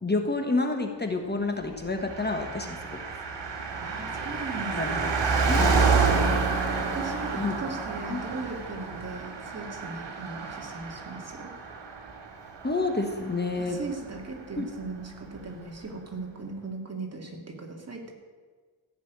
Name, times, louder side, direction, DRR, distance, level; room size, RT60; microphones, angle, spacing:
voice 1, 0.0-3.0 4.7-5.0 5.4-5.9 7.4-7.5 8.1-8.2 12.6-13.8 14.6-14.7, left 3 dB, 25° left, 4 dB, 1.4 m, -29 dB
Car passing by, 2.0-13.9 14.1-14.2, right 4 dB, 80° right, 2.4 m, -29 dB
voice 2, 3.8-5.0 6.8-11.5 13.5-18.1, right 3 dB, 35° right, 2 dB, 2.5 m, -38 dB
14.5 x 6.8 x 9.6 m, 1.5 s
wide cardioid pair, 105°, 42 cm